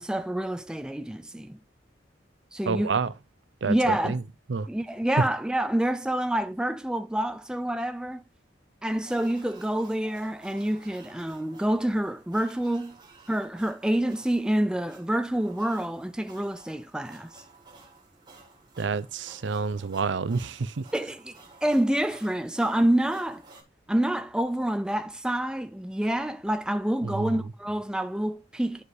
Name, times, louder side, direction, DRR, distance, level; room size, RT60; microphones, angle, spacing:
voice 1, 0.0-1.6 2.5-3.0 3.7-4.2 4.7-8.2 8.8-13.0 13.3-17.4 20.9-23.4 23.9-28.8, right 1 dB, 5° right, 0.3 m, -27 dB
voice 2, 2.7-3.1 3.6-4.2 4.5-4.7 18.8-20.8 27.0-27.5, right 5 dB, 75° right, 0.6 m, -29 dB
sound 1, 8.9-23.6, right 3 dB, 25° right, 1.7 m, -53 dB
12.0 x 4.8 x 2.6 m
head